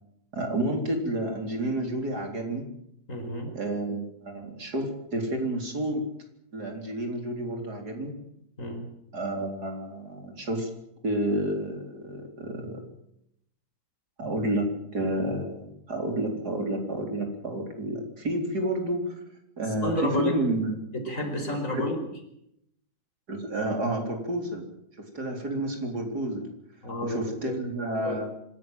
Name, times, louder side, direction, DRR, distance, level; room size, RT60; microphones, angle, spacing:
voice 1, 0.3-2.7 3.5-6.1 6.5-8.2 9.1-10.7 11.0-12.8 14.2-19.2 19.6-20.8 21.7-21.8 23.3-24.7 25.0-26.5 27.0-28.3, right 1 dB, 70° right, 3 dB, 4.6 m, -30 dB
voice 2, 3.1-3.5 8.6-8.8 19.8-20.4 20.9-22.0 26.8-27.6 28.0-28.2, left 1 dB, 50° left, 3 dB, 5.4 m, -30 dB
26.0 x 13.5 x 9.2 m, 0.77 s
omnidirectional pair, 1.8 m